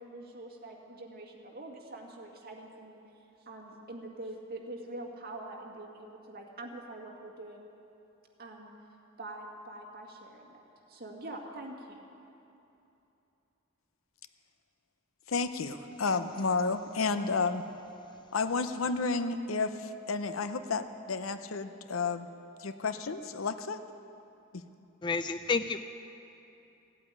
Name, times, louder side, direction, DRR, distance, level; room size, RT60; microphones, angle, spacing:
voice 1, 0.0-3.0 3.5-7.7 8.4-8.7 9.2-10.6 10.9-12.0, right 2 dB, 50° right, 1 dB, 2.0 m, -44 dB
voice 2, 15.3-17.6 18.3-22.3 22.6-23.8, left 4 dB, 85° left, 10 dB, 0.7 m, -31 dB
voice 3, 25.0-25.8, left 4 dB, 25° left, 10 dB, 0.4 m, -30 dB
16.0 x 8.5 x 9.4 m, 2.8 s
head